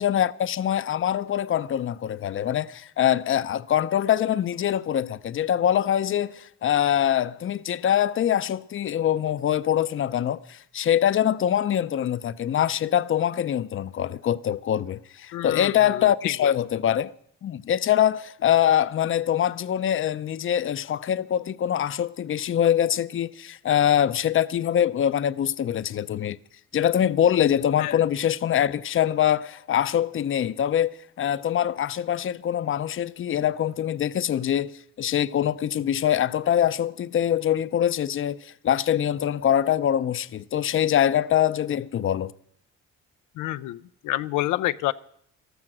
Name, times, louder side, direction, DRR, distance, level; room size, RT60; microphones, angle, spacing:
voice 1, 0.0-17.1 17.4-26.4 26.7-42.3, left 10 dB, 45° left, 0.6 m, -24 dB
voice 2, 15.3-16.5 27.8-28.0 43.4-44.9, left 16 dB, 90° left, 0.5 m, -29 dB
14.0 x 13.0 x 6.1 m
cardioid pair, 90°, 30 cm